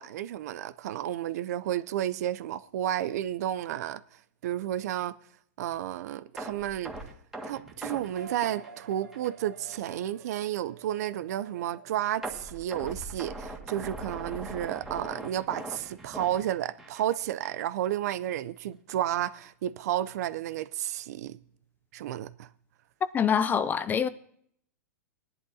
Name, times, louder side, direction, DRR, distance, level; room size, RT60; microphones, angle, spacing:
voice 1, 0.0-4.0 4.4-5.1 5.6-6.9 7.4-21.4 21.9-22.5, right 12 dB, 65° right, 0.6 m, -32 dB
sound 1, 6.4-9.4 9.7-9.9 10.4-10.5 12.2-17.1 17.4-17.6 18.1-18.2, right 2 dB, 5° right, 1.9 m, -40 dB
sound 2, 8.1-12.9, right 6 dB, 85° right, 1.2 m, -49 dB
voice 2, 23.1-24.1, left 7 dB, 20° left, 0.5 m, -25 dB
20.0 x 10.5 x 2.8 m
hypercardioid pair, 120°, 9 cm